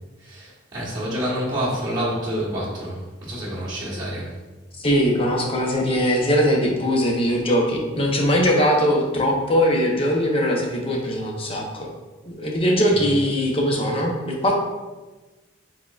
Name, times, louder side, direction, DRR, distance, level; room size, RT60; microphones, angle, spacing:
voice 1, 0.2-4.3 12.9-13.2, equal, 20° right, -8 dB, 1.2 m, -28 dB
voice 2, 4.8-11.9 12.3-14.6, equal, 30° left, 0 dB, 0.7 m, -21 dB
4.5 x 4.3 x 2.3 m, 1.2 s
head